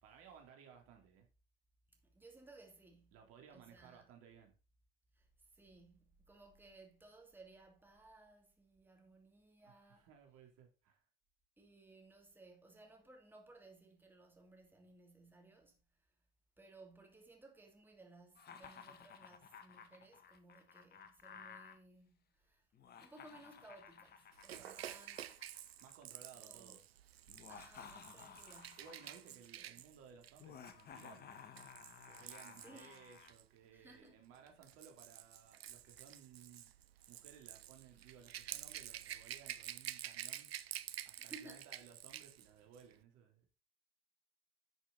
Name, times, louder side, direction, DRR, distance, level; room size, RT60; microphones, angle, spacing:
voice 1, 0.0-1.3 3.1-4.5 9.6-11.0 24.5-24.8 25.8-26.8 28.8-31.3 32.1-36.7 37.1-40.5 41.0-43.6, right 7 dB, 50° right, 2.8 m, -60 dB
voice 2, 2.0-3.2 3.5-4.1 5.1-10.1 11.6-16.1 16.6-22.6 23.0-25.2 26.3-26.8 27.5-28.8 29.3-29.7 32.0-32.2 32.6-33.0 33.7-34.2 41.2-41.6, right 2 dB, 5° right, 2.6 m, -60 dB
Laughter, 18.4-21.8 22.7-26.0 27.3-29.3 30.4-33.3, left 7 dB, 30° left, 1.5 m, -56 dB
Rattle / Rattle (instrument), 24.4-33.4 34.4-42.5 42.7-42.9, right 11 dB, 85° right, 0.6 m, -50 dB
11.0 x 6.4 x 3.9 m
hypercardioid pair, 90°, 30 cm